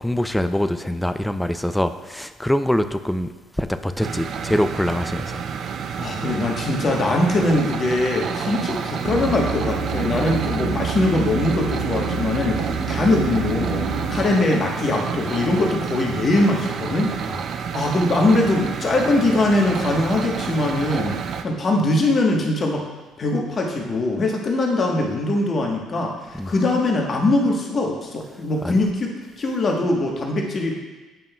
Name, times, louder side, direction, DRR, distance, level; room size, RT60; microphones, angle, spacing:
voice 1, 0.0-3.3 3.6-5.4 17.3-17.4 26.3-26.5 28.6-28.8, left 1 dB, 5° left, 10 dB, 0.4 m, -24 dB
sound 1, 4.0-21.4, right 6 dB, 55° right, 0.4 m, -30 dB
voice 2, 6.0-17.2 17.7-21.2 21.4-22.9 23.2-26.2 26.5-30.7, left 2 dB, 40° left, 0 dB, 1.2 m, -22 dB
Airplane ambience, 9.0-14.3, right 4 dB, 80° right, 1.2 m, -27 dB
8.9 x 5.3 x 2.3 m, 1.2 s
hypercardioid pair, 60°, 0 cm